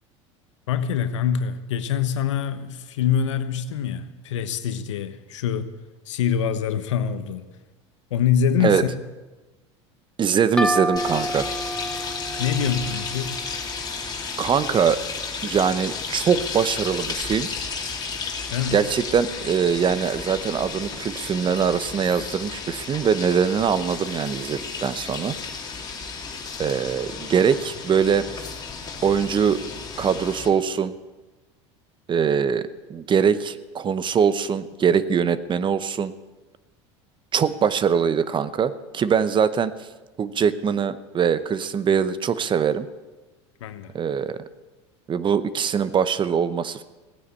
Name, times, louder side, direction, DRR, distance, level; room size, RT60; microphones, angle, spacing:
voice 1, 0.7-5.7 6.1-7.5 8.1-8.9 12.4-13.4 18.5-18.8 43.6-43.9, left 8 dB, 85° left, 10 dB, 1.1 m, -25 dB
voice 2, 10.2-11.5 14.4-15.0 15.4-17.5 18.7-25.4 26.6-28.2 29.0-29.6 30.0-30.9 32.1-36.1 37.3-39.7 40.2-42.9 43.9-44.4 45.1-46.8, right 7 dB, 30° right, 14 dB, 0.9 m, -22 dB
sound 1, 10.6-14.1, equal, 5° left, 0.7 m, -29 dB
sound 2, 11.0-30.5, left 5 dB, 25° left, 2.8 m, -33 dB
16.5 x 9.6 x 8.5 m, 1.2 s
hypercardioid pair, 90°, 15 cm